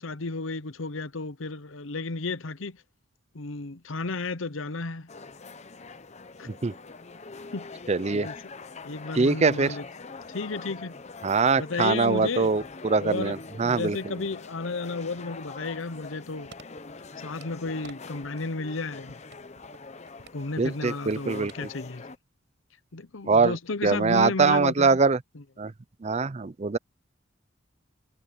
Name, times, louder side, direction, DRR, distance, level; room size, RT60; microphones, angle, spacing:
voice 1, 0.0-2.8 3.3-5.1 6.4-6.5 7.5-7.7 8.1-8.4 8.8-9.8 10.3-11.0 11.6-12.5 12.9-16.5 17.2-19.2 20.3-22.0 22.9-25.0 25.3-25.4, left 3 dB, 75° left, 0.9 m, -33 dB
sound 1, 5.1-22.2, left 4 dB, 35° left, 0.8 m, -44 dB
voice 2, 7.9-8.3 9.1-9.8 11.2-14.0 20.6-21.5 23.3-23.6 23.8-25.2 25.6-25.7 26.0-26.8, right 4 dB, 35° right, 0.5 m, -23 dB
sound 2, 16.0-18.0 18.2-18.8 19.1-21.6 21.9-22.0, right 4 dB, 60° right, 6.8 m, -51 dB
head